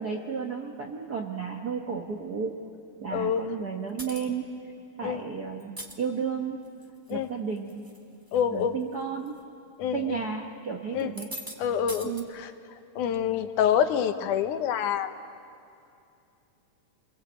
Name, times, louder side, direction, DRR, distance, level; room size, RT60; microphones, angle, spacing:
voice 1, 0.0-2.5 3.0-4.5 5.0-6.6 7.1-7.8 8.5-9.3 9.9-11.4 12.0-12.3, right 6 dB, 60° right, 1 dB, 1.0 m, -33 dB
voice 2, 3.1-3.4 5.0-5.2 7.1-7.3 8.3-8.8 9.8-10.2 10.9-11.1 11.6-12.5 13.0-15.1, left 8 dB, 80° left, 9 dB, 2.5 m, -26 dB
sound 1, 4.0-4.3 5.6-5.9 6.7-7.1 7.6-8.0 8.3-8.4 9.3-9.4 11.0-11.6 11.9-12.2, equal, 10° right, 0.9 m, -40 dB
27.0 x 23.0 x 8.1 m, 2.5 s
omnidirectional pair, 3.5 m